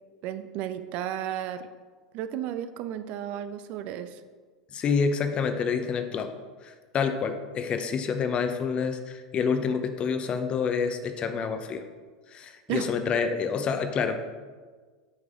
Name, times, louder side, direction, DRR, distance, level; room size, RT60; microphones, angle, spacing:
voice 1, 0.2-1.7 2.1-4.2 12.7-12.9, right 11 dB, 50° right, 11 dB, 0.4 m, -33 dB
voice 2, 4.7-6.3 6.6-11.8 12.3-14.2, left 6 dB, 35° left, 8 dB, 0.7 m, -28 dB
8.4 x 4.8 x 3.7 m, 1.5 s
hypercardioid pair, 85°, 3 cm